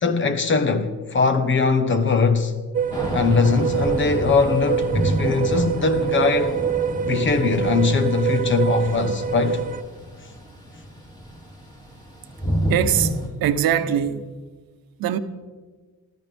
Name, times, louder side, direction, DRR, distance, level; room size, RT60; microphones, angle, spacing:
voice 1, 0.0-2.5 3.1-6.6 7.0-9.6, left 4 dB, 35° left, 1.2 m, -21 dB
sound 1, 2.7-9.8, right 8 dB, 25° right, 0.6 m, -26 dB
Thunder / Rain, 2.9-13.3, equal, 10° left, 3.6 m, -30 dB
voice 2, 12.7-14.3 15.0-15.2, right 10 dB, 90° right, 1.1 m, -22 dB
26.5 x 13.5 x 3.5 m
cardioid pair, 160°, 35 cm